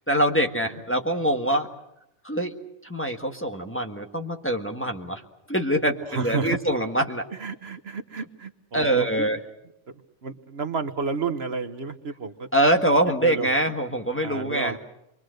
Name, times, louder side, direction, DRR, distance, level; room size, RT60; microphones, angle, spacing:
voice 1, 0.1-1.7 2.2-2.5 2.8-5.2 5.5-7.2 8.7-9.4 12.5-14.8, right 1 dB, 10° left, 2 dB, 1.6 m, -24 dB
voice 2, 6.1-6.6 7.4-9.3 10.2-12.5 13.2-13.5 14.2-14.8, right 5 dB, 60° right, 9 dB, 1.3 m, -31 dB
28.5 x 23.0 x 6.5 m, 0.84 s
omnidirectional pair, 1.2 m